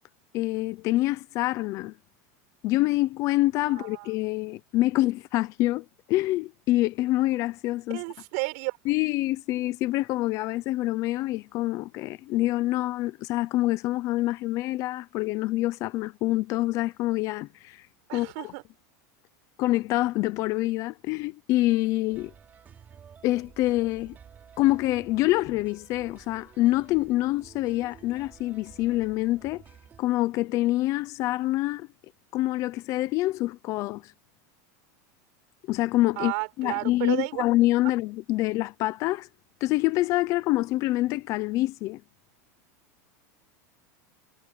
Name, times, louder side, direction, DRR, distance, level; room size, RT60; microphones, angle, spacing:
voice 1, 0.3-1.9 2.6-8.0 8.9-17.8 18.1-18.3 19.6-22.3 23.2-24.2 24.6-29.6 30.0-31.9 32.3-34.1 35.7-36.3 36.6-39.3 39.6-42.0, left 17 dB, 35° left, 0.7 m, -26 dB
voice 2, 3.7-4.1 7.9-8.8 18.1-18.6 36.2-37.4, right 33 dB, 50° right, 6.0 m, -32 dB
sound 1, 22.1-30.0, right 7 dB, 20° right, 4.1 m, -52 dB
supercardioid pair, 170°, 9 cm